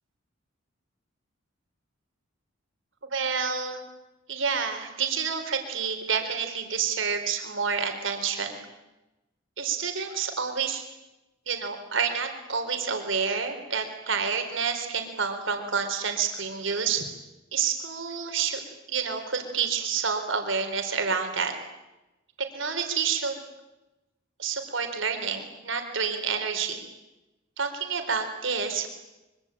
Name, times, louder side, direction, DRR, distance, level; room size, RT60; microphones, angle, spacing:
voice 1, 3.1-3.8 4.3-8.6 9.6-10.8 11.5-17.0 17.5-18.6 18.9-21.5 22.4-23.4 24.4-26.8 27.6-28.9, right 6 dB, 70° right, 6 dB, 4.1 m, -28 dB
25.0 x 24.0 x 9.0 m, 1.0 s
head